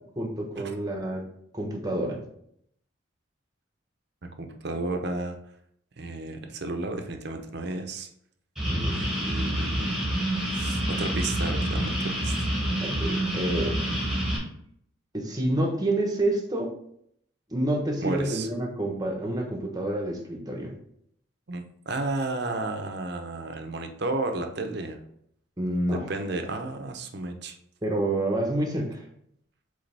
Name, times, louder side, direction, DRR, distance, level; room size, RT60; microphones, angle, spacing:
voice 1, 0.2-1.2 1.5-2.2 8.7-9.0 12.8-13.8 15.1-16.7 17.5-20.7 25.6-26.1 27.8-29.0, right 1 dB, 20° right, 1 dB, 1.1 m, -28 dB
voice 2, 4.2-5.4 6.0-8.1 8.9-9.9 10.5-12.3 18.0-18.5 21.5-25.0 25.9-27.6, right 2 dB, 55° right, 5 dB, 0.8 m, -32 dB
sound 1, 8.6-14.4, right 1 dB, ahead, 1.6 m, -27 dB
8.0 x 3.4 x 3.4 m, 0.70 s
head